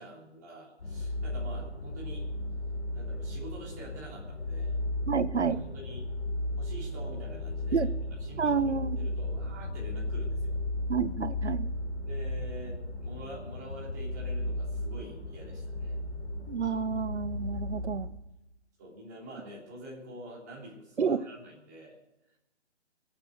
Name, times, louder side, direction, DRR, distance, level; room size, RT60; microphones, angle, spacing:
voice 1, 0.0-2.3 2.9-4.8 5.6-6.1 6.6-7.9 8.2-10.6 12.0-16.0 18.8-22.0, equal, 15° right, -5 dB, 3.4 m, -46 dB
sound 1, 0.8-18.1, left 1 dB, 65° left, 4.7 m, -35 dB
voice 2, 5.1-5.6 7.7-7.9 8.4-9.0 10.9-11.7 16.5-18.1 21.0-21.2, right 6 dB, 70° right, 15 dB, 1.1 m, -29 dB
23.0 x 9.0 x 6.6 m, 0.92 s
hypercardioid pair, 180°, 35 cm